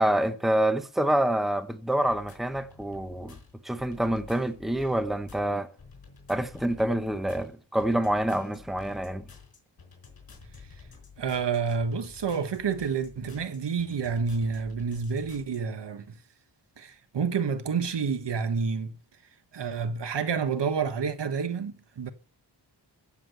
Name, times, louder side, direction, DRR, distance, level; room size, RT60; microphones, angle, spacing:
voice 1, 0.0-3.4 3.6-5.7 6.3-9.3, right 1 dB, ahead, 1.0 m, -27 dB
sound 1, 2.0-15.6, left 5 dB, 55° left, 4.9 m, -50 dB
voice 2, 11.2-16.2 16.8-18.9 19.5-22.1, right 5 dB, 70° right, 1.4 m, -29 dB
14.5 x 7.6 x 7.8 m
wide cardioid pair, 120°, 43 cm